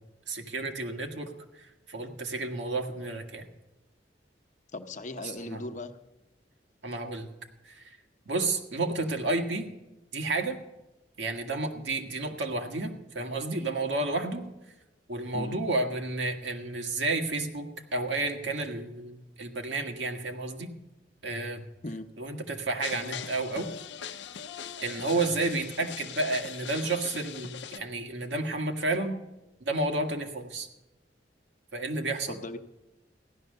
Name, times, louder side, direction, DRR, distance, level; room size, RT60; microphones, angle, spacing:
voice 1, 0.3-3.5 5.2-5.6 6.8-7.3 7.6-7.9 8.2-9.7 10.1-10.6 11.2-14.4 15.1-17.7 17.9-20.7 21.2-21.6 22.2-23.7 24.1-24.2 24.8-29.2 29.6-30.7 31.7-32.4, right 2 dB, 80° right, 4 dB, 1.7 m, -31 dB
voice 2, 4.7-5.9 15.3-15.6 21.8-22.1 32.3-32.6, left 2 dB, 45° left, 8 dB, 0.9 m, -38 dB
sound 1, 22.8-27.8, left 8 dB, 75° left, 0.6 m, -41 dB
15.5 x 11.5 x 6.6 m, 1.0 s
head